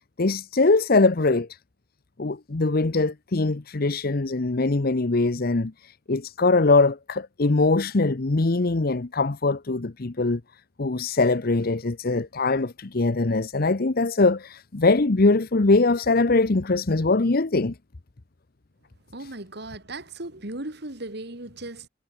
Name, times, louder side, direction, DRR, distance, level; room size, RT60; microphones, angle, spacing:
voice 1, 0.2-1.5 2.2-10.4 10.8-17.7, left 3 dB, 55° left, 0.9 m, -22 dB
voice 2, 19.1-21.9, right 2 dB, 60° right, 2.9 m, -37 dB
head